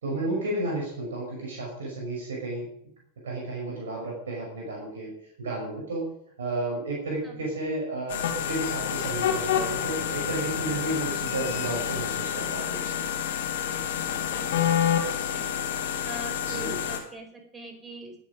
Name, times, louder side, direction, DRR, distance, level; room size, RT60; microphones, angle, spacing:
voice 1, 0.0-2.7 3.2-6.1 6.4-13.0 16.4-16.8, right 2 dB, 65° right, -2 dB, 5.8 m, -32 dB
sound 1, 8.1-17.0, left 9 dB, 55° left, 2.8 m, -28 dB
voice 2, 14.0-15.5 15.8-18.2, right 1 dB, 15° right, 3 dB, 4.6 m, -44 dB
21.0 x 8.2 x 5.2 m, 0.70 s
figure-of-eight pair, 90°, 0 cm